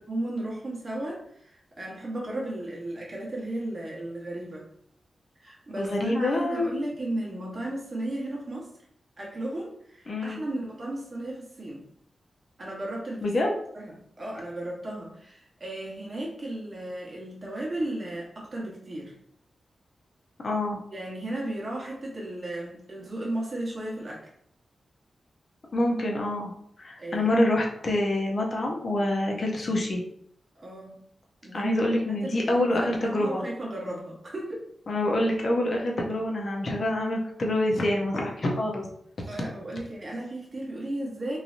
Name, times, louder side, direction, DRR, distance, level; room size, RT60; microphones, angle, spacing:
voice 1, 0.1-4.7 5.4-8.7 9.2-11.9 12.6-13.3 13.7-19.1 20.9-24.3 27.0-27.3 30.5-31.0 31.4-31.8 32.2-34.7 39.3-41.4, right 1 dB, 35° right, -4 dB, 0.9 m, -35 dB
voice 2, 5.8-6.7 10.1-10.4 13.2-13.5 20.4-20.8 25.7-26.5 26.8-30.0 31.5-33.4 34.9-38.9, left 1 dB, 45° left, 0 dB, 0.6 m, -26 dB
3.1 x 2.6 x 2.5 m, 0.70 s
wide cardioid pair, 165°, 0 cm